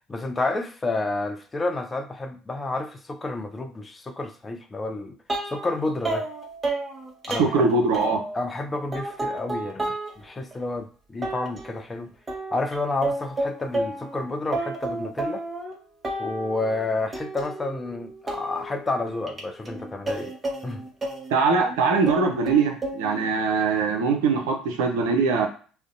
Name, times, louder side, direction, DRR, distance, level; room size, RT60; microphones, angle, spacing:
voice 1, 0.1-5.1 5.5-6.3 7.3-7.7 8.3-12.1 12.5-15.4 16.2-20.3 20.6-20.8, left 2 dB, 25° left, 0.5 m, -30 dB
sound 1, 5.3-5.8 6.0-8.5 8.9-10.1 10.5-10.6 11.2-11.8 12.3-14.2 14.5-15.7 16.0-16.8 17.1-21.8 22.1-23.3, right 2 dB, 25° right, 0.8 m, -31 dB
voice 2, 7.3-8.2 21.3-25.5, right 4 dB, 75° right, 0.5 m, -22 dB
2.5 x 2.1 x 2.6 m
hypercardioid pair, 65°, 0 cm